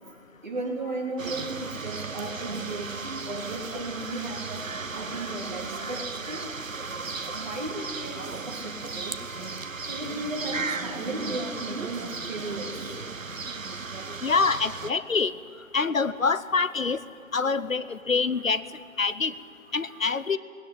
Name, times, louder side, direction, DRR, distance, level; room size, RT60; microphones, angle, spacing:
voice 1, 0.0-3.0 3.3-4.7 4.9-6.5 7.1-9.2 9.9-12.8 16.8-16.9 18.3-18.4 19.8-20.0, right 2 dB, 35° right, -1 dB, 3.1 m, -35 dB
sound 1, 1.2-14.9, right 4 dB, 70° right, 1.1 m, -35 dB
voice 2, 14.2-15.3 15.7-17.0 17.3-18.6 19.0-19.3 19.7-20.4, left 4 dB, 75° left, 15 dB, 0.9 m, -25 dB
19.0 x 16.0 x 9.9 m, 2.2 s
figure-of-eight pair, 160°, 41 cm